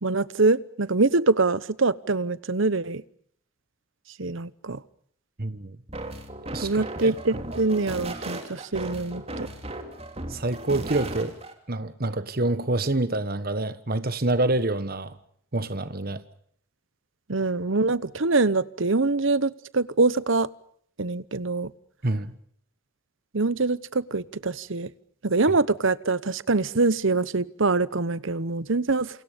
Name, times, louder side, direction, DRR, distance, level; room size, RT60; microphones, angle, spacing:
voice 1, 0.0-3.0 4.2-4.8 6.6-9.5 17.3-20.5 21.0-21.7 23.3-24.9 25.2-29.2, right 3 dB, 65° right, 1.0 m, -24 dB
voice 2, 5.4-5.8 6.5-7.1 10.3-11.3 11.7-15.1 15.5-16.2 22.0-22.3, right 2 dB, 45° right, 1.4 m, -27 dB
sound 1, 5.9-11.5, right 1 dB, 30° right, 3.3 m, -36 dB
28.5 x 28.0 x 5.2 m
head